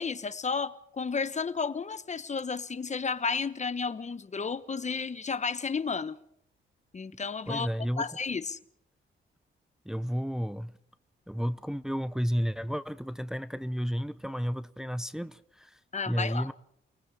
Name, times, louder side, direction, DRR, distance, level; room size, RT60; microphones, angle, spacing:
voice 1, 0.0-6.2 6.9-7.7 8.0-8.6 15.9-16.5, left 5 dB, 35° left, 1.2 m, -32 dB
voice 2, 7.5-8.1 9.8-10.7 11.3-15.8 16.1-16.5, equal, 5° right, 0.8 m, -32 dB
29.5 x 19.0 x 5.0 m
cardioid pair, 95°, 21 cm